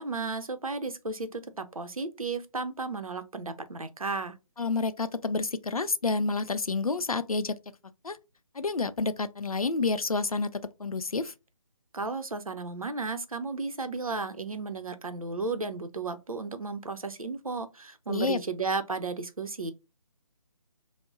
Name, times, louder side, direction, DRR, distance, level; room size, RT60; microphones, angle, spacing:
voice 1, 0.0-4.4 11.9-19.7, right 3 dB, 80° right, 0.6 m, -34 dB
voice 2, 4.6-7.5 8.0-8.2 8.5-10.5 10.8-11.3 18.1-18.4, left 3 dB, 85° left, 0.5 m, -29 dB
3.7 x 2.1 x 2.4 m
figure-of-eight pair, 150°, 18 cm